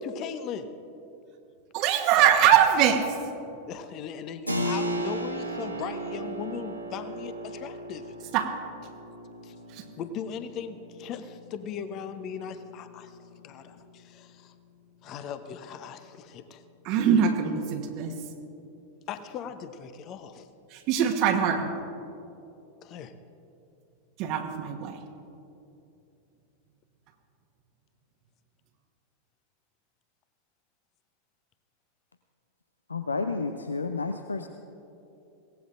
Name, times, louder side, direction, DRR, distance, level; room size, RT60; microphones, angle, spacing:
voice 1, 0.0-0.8 3.7-8.3 9.4-9.6 9.9-14.5 15.0-16.6 19.1-20.5 22.8-23.1, left 7 dB, 35° left, 11 dB, 0.8 m, -39 dB
voice 2, 1.7-3.2 8.3-8.5 9.7-9.8 16.8-18.1 20.7-21.7 24.2-25.0, right 8 dB, 40° right, 5 dB, 1.1 m, -23 dB
Keyboard (musical), 4.5-14.8, equal, 90° right, 1.2 m, -37 dB
voice 3, 32.9-34.5, left 4 dB, 75° left, 9 dB, 0.5 m, -31 dB
22.5 x 18.0 x 2.5 m, 2.8 s
figure-of-eight pair, 90°, 0 cm